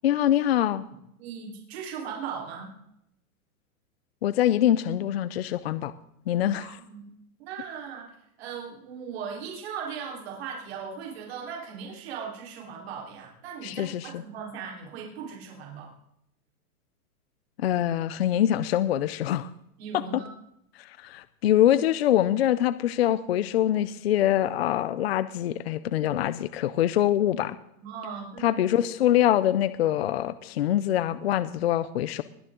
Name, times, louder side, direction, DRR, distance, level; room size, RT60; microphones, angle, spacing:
voice 1, 0.0-0.8 4.2-5.9 6.3-6.7 13.6-14.2 17.6-19.5 20.8-27.6 28.4-32.2, left 12 dB, 45° left, 15 dB, 0.5 m, -24 dB
voice 2, 1.2-2.7 6.5-7.0 7.4-8.1 8.4-15.9 19.8-20.3 27.8-28.8, right 6 dB, 45° right, -1 dB, 4.0 m, -38 dB
21.0 x 9.3 x 3.7 m, 0.77 s
supercardioid pair, 175°, 43 cm